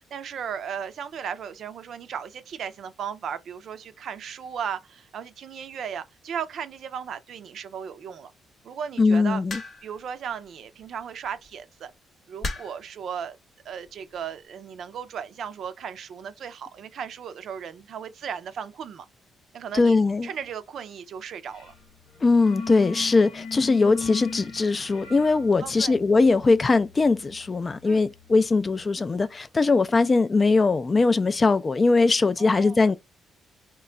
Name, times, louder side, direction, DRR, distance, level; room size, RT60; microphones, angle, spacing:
voice 1, 0.0-8.3 8.6-9.4 9.8-11.9 12.3-13.4 13.6-19.1 19.5-20.0 20.2-21.7 25.6-26.0 27.8-28.0 32.4-32.8, right 7 dB, 65° right, 0.4 m, -36 dB
voice 2, 9.0-9.6 19.7-20.3 22.2-33.0, left 3 dB, 30° left, 0.3 m, -21 dB
sound 1, 9.5-10.0 11.2-11.5 12.4-12.9 13.9-14.2, left 3 dB, 50° left, 0.8 m, -34 dB
sound 2, 21.5-21.8 22.1-28.7, left 4 dB, 85° left, 1.0 m, -39 dB
3.0 x 2.2 x 3.7 m
cardioid pair, 90°, 0 cm